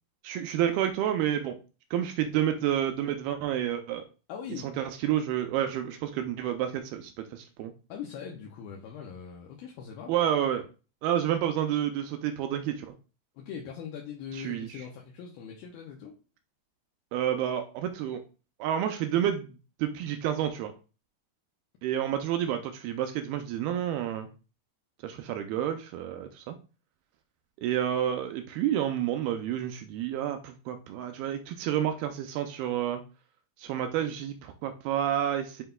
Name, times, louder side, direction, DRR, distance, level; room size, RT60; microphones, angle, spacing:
voice 1, 0.2-1.6 1.9-4.0 4.6-7.7 10.1-10.7 11.0-12.9 14.3-14.8 17.1-18.2 18.6-19.5 19.8-20.7 21.8-24.3 25.0-26.6 27.6-33.0 33.6-35.6, right 10 dB, 85° right, 7 dB, 2.2 m, -29 dB
voice 2, 4.3-4.7 7.9-10.1 13.4-16.1, left 7 dB, 75° left, -1 dB, 2.4 m, -41 dB
7.7 x 5.3 x 2.3 m, 0.35 s
omnidirectional pair, 4.9 m